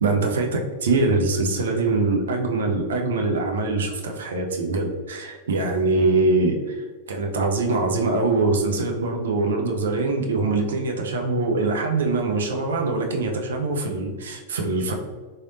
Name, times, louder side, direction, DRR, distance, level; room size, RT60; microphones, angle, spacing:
voice 1, 0.0-14.9, right 3 dB, 65° right, 2 dB, 0.5 m, -23 dB
3.9 x 3.2 x 2.6 m, 1.4 s
figure-of-eight pair, 90°, 0 cm